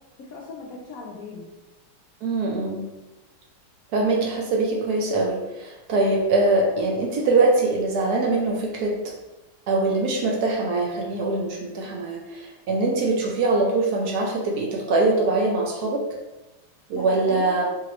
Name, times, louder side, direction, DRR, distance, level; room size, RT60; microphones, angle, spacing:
voice 1, 0.2-1.5 16.9-17.6, left 3 dB, 85° left, -3 dB, 0.7 m, -38 dB
voice 2, 2.2-2.8 3.9-8.9 9.7-16.0 16.9-17.6, right 2 dB, 80° right, 0 dB, 0.8 m, -23 dB
4.6 x 3.0 x 3.0 m, 1.1 s
omnidirectional pair, 2.3 m